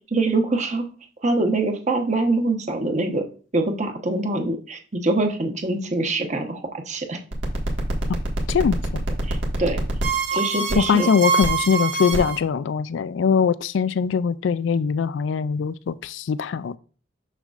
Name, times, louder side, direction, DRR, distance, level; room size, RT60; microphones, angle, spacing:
voice 1, 0.1-0.9 1.2-3.2 3.5-7.2 9.2-9.8 10.3-11.1, right 2 dB, 40° right, 1.0 m, -24 dB
sound 1, 7.3-12.4, right 3 dB, 80° right, 1.6 m, -24 dB
voice 2, 8.5-9.0 10.8-16.8, left 6 dB, 75° left, 0.3 m, -22 dB
6.6 x 6.4 x 2.4 m
head